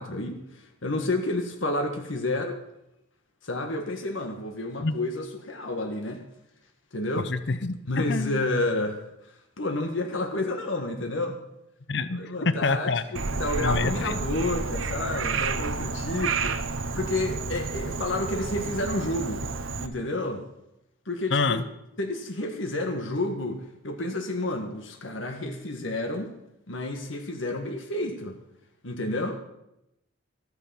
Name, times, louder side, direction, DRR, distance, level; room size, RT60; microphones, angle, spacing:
voice 1, 0.0-2.6 3.4-6.2 6.9-7.3 7.9-11.4 12.1-19.5 19.8-20.4 21.0-21.7 22.0-26.3 26.7-28.4 28.8-29.4, left 2 dB, 75° left, 4 dB, 1.7 m, -30 dB
voice 2, 7.2-7.8 8.1-8.4 11.9-13.0 13.6-14.1 21.3-21.6, left 3 dB, 60° left, 13 dB, 0.7 m, -26 dB
Frog, 13.2-19.9, right 4 dB, 85° right, 1.0 m, -30 dB
14.0 x 9.7 x 7.1 m, 0.85 s
head